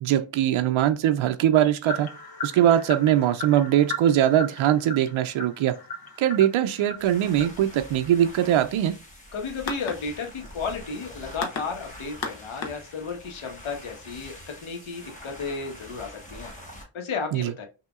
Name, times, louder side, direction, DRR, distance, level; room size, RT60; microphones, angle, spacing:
voice 1, 0.0-2.1 2.4-5.8 6.2-8.9 17.3-17.5, right 11 dB, 75° right, 0.6 m, -21 dB
sound 1, 1.8-13.3, left 2 dB, 45° left, 0.9 m, -38 dB
sound 2, 6.9-16.8, equal, 15° left, 1.3 m, -45 dB
voice 2, 9.3-17.7, left 4 dB, 75° left, 1.4 m, -33 dB
5.8 x 2.8 x 2.4 m
wide cardioid pair, 175°, 49 cm